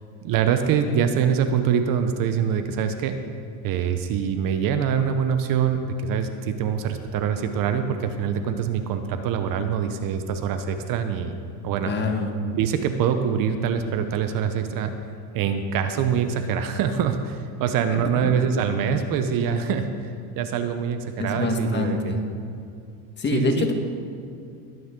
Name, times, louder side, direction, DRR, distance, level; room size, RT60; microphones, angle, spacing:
voice 1, 0.2-3.2 3.6-11.4 11.6-11.9 12.5-14.9 15.3-22.2 23.3-23.7, right 7 dB, 45° right, 8 dB, 0.9 m, -24 dB
voice 2, 11.8-12.3 17.9-18.4 21.2-22.2 23.2-23.7, left 3 dB, 25° left, 4 dB, 1.5 m, -25 dB
21.5 x 9.3 x 3.8 m, 2.4 s
supercardioid pair, 125°, 46 cm